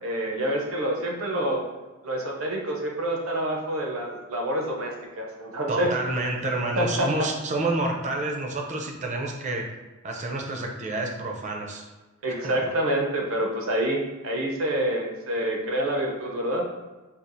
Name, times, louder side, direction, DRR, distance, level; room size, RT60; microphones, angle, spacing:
voice 1, 0.0-1.6 2.0-5.9 6.8-7.1 12.2-16.6, right 1 dB, 75° right, 0 dB, 0.7 m, -27 dB
voice 2, 5.7-9.7 10.0-11.9 12.4-12.7, right 2 dB, 35° right, 1 dB, 0.5 m, -29 dB
4.3 x 2.4 x 2.6 m, 1.2 s
head